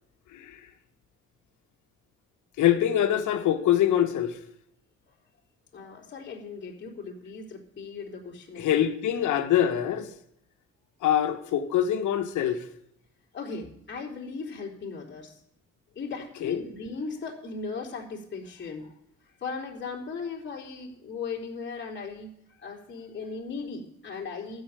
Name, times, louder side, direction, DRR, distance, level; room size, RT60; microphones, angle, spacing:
voice 1, 2.6-4.4 8.6-10.1 11.0-12.6 16.4-16.6, left 11 dB, 80° left, 1.2 m, -24 dB
voice 2, 5.7-8.9 13.3-15.3 16.0-18.9 19.4-24.6, left 4 dB, 35° left, 3.7 m, -37 dB
13.0 x 5.7 x 9.0 m
cardioid pair, 90°, 30 cm